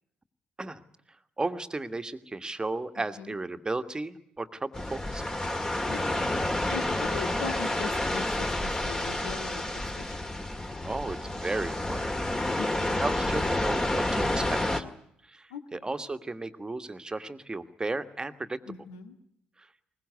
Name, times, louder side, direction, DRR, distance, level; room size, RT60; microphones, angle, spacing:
voice 1, 1.4-5.3 10.8-12.5 12.8-14.8 15.2-18.6 19.6-19.7, right 2 dB, 20° right, 9 dB, 1.6 m, -34 dB
sound 1, 4.7-14.8, left 1 dB, 15° left, 2.0 m, -29 dB
voice 2, 5.9-6.4 6.7-10.3 12.6-13.0 15.5-15.9 18.7-19.2, left 7 dB, 70° left, 8 dB, 1.8 m, -41 dB
21.5 x 20.5 x 9.6 m, 0.71 s
figure-of-eight pair, 45°, 4 cm